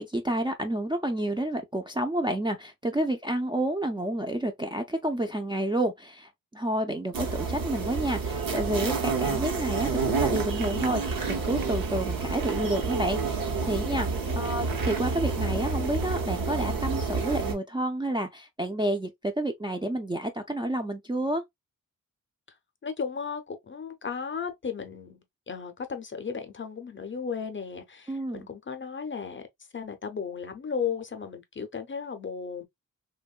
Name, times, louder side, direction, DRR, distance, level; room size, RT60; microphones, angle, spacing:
voice 1, 0.0-21.4 28.1-28.5, right 1 dB, 15° right, 0.3 m, -30 dB
sound 1, 7.1-17.5, right 4 dB, 90° right, 0.9 m, -29 dB
voice 2, 22.8-29.4 29.7-32.7, left 6 dB, 35° left, 0.5 m, -35 dB
2.9 x 2.2 x 2.3 m
wide cardioid pair, 115°, 33 cm